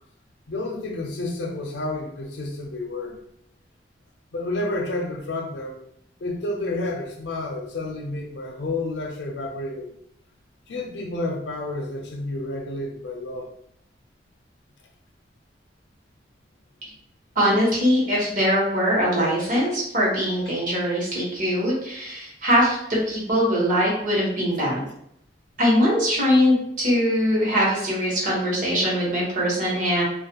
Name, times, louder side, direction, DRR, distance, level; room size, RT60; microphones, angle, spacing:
voice 1, 0.5-3.2 4.3-5.8 6.2-9.9 10.7-13.5, left 2 dB, 75° left, 2 dB, 0.5 m, -30 dB
voice 2, 17.3-24.8 25.6-30.0, equal, 45° right, -5 dB, 1.0 m, -22 dB
2.4 x 2.1 x 2.8 m, 0.74 s
head